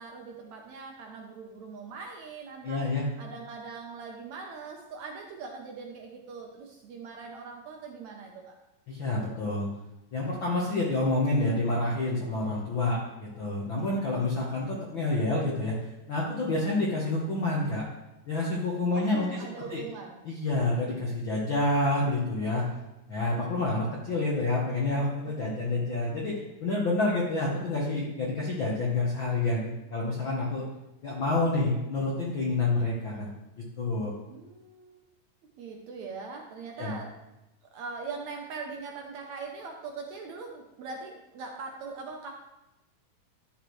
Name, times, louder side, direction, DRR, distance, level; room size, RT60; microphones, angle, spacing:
voice 1, 0.0-2.8 3.2-8.3 18.9-20.2 25.3-25.6 34.3-35.0 35.6-37.1 37.7-42.3, right 4 dB, 70° right, 1 dB, 1.8 m, -41 dB
voice 2, 2.6-3.1 8.9-9.7 10.1-15.8 16.1-17.8 18.3-19.4 19.7-19.8 20.2-22.6 23.1-30.6 31.0-33.3 33.8-34.1 36.8-37.0, left 2 dB, 65° left, -4 dB, 1.2 m, -28 dB
11.5 x 7.2 x 3.1 m, 0.96 s
omnidirectional pair, 4.0 m